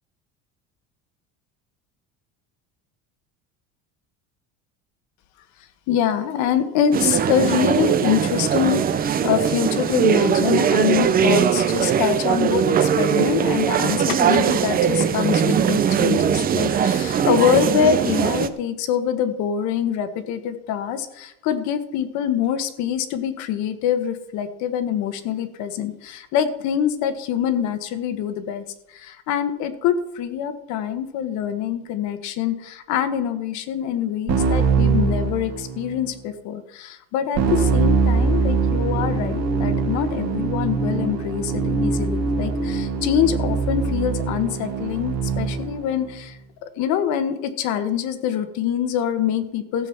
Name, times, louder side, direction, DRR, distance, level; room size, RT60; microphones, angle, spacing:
voice 1, 5.9-49.9, left 9 dB, 65° left, 10 dB, 1.4 m, -24 dB
sound 1, 6.9-18.5, right 8 dB, 30° right, 0.7 m, -20 dB
Keyboard (musical), 34.3-36.0 37.4-45.7, right 5 dB, 55° right, 2.1 m, -23 dB
sound 2, 37.6-43.8, equal, 5° right, 2.3 m, -30 dB
14.5 x 7.3 x 5.8 m, 0.84 s
cardioid pair, 140°, 31 cm